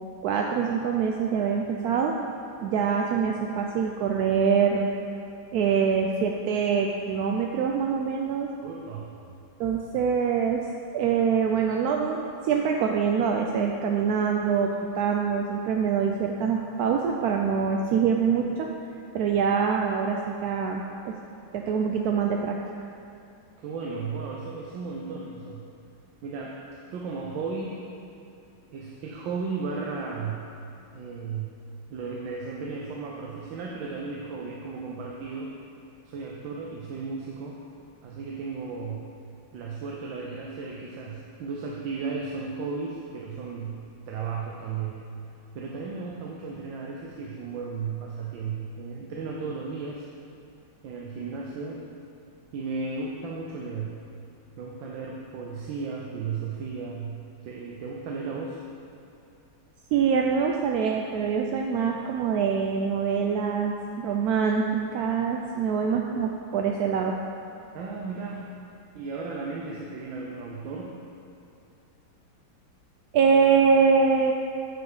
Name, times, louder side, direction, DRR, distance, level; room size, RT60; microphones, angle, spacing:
voice 1, 0.2-2.2 2.6-4.9 5.5-8.5 9.6-10.6 10.9-18.7 19.1-21.2 21.5-22.6 59.9-67.2 73.1-74.3, right 6 dB, 75° right, 1 dB, 0.9 m, -24 dB
voice 2, 8.6-9.1 23.6-25.7 26.2-26.6 26.9-27.9 28.7-30.5 30.9-31.5 31.9-35.5 36.1-37.6 38.0-39.1 39.5-45.1 45.5-50.1 50.8-51.8 52.5-54.0 54.6-58.6 67.7-68.5 68.9-70.9, right 4 dB, 90° right, -2 dB, 1.5 m, -35 dB
8.7 x 6.9 x 4.9 m, 2.7 s
omnidirectional pair, 2.0 m